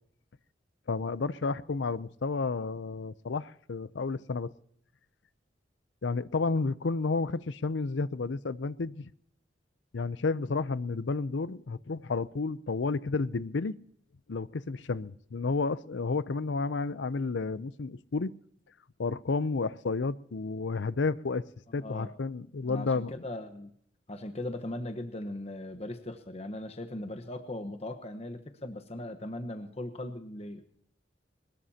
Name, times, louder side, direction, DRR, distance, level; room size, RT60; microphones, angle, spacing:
voice 1, 0.9-4.5 6.0-9.1 9.9-13.7 14.3-18.3 19.0-21.4 21.7-23.1, left 4 dB, 85° left, 0.6 m, -31 dB
voice 2, 21.8-22.1 22.6-23.7 24.1-30.7, left 1 dB, 35° left, 1.2 m, -39 dB
22.5 x 20.5 x 2.8 m
head